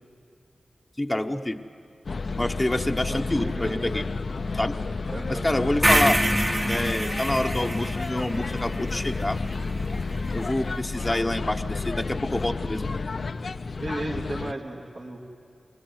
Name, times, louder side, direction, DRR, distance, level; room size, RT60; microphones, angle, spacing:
voice 1, 1.0-1.6 2.4-4.1 4.5-4.8 5.3-6.2 6.7-9.4 10.3-12.9, left 1 dB, 15° left, 4 dB, 1.0 m, -27 dB
sound 1, 2.1-14.5, left 4 dB, 55° left, 0.6 m, -31 dB
voice 2, 3.1-3.9 5.1-5.5 13.8-15.2, right 1 dB, 55° right, -4 dB, 2.8 m, -34 dB
sound 2, 5.8-10.0, right 1 dB, 15° right, 1.2 m, -26 dB
27.0 x 22.5 x 9.7 m, 2.4 s
wide cardioid pair, 115°, 0 cm